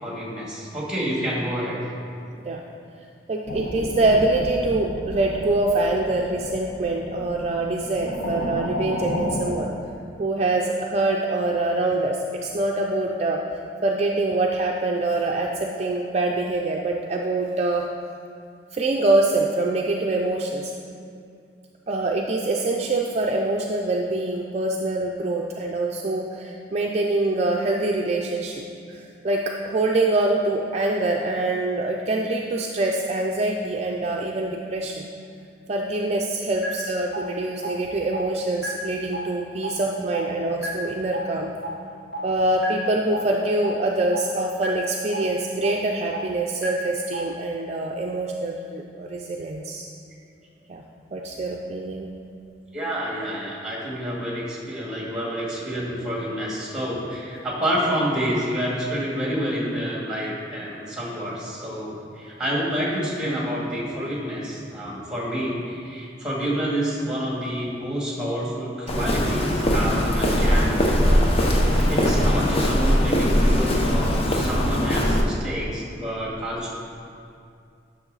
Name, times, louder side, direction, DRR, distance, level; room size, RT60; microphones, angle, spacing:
voice 1, 0.0-1.8 52.7-71.2 71.5-76.7, equal, 5° right, -4 dB, 1.9 m, -28 dB
voice 2, 3.3-9.7 10.2-13.4 13.8-17.9 18.7-20.7 21.9-28.6 28.9-35.0 35.7-41.5 42.2-49.9 50.7-50.8 51.1-52.1, right 2 dB, 35° right, 0 dB, 0.5 m, -24 dB
sound 1, 3.4-9.6, left 1 dB, 90° left, 1.0 m, -32 dB
sound 2, 36.6-36.7 37.1-37.2 37.6-37.7 38.1-38.2 38.6-38.7 39.1-39.2 39.6-39.7 40.1-40.2 40.6-40.7 41.1-41.2 41.6-41.7 42.1-42.2 42.6-42.7 43.1-43.2 43.6-43.7 44.1-44.2 44.6-44.7 45.1-45.2 45.6-45.7 46.1-46.2 46.6-46.7 47.1-47.2, right 2 dB, 60° left, 2.0 m, -31 dB
Walk footsteps, 68.9-75.2, equal, 35° left, 0.8 m, -20 dB
9.9 x 6.2 x 4.0 m, 2.4 s
head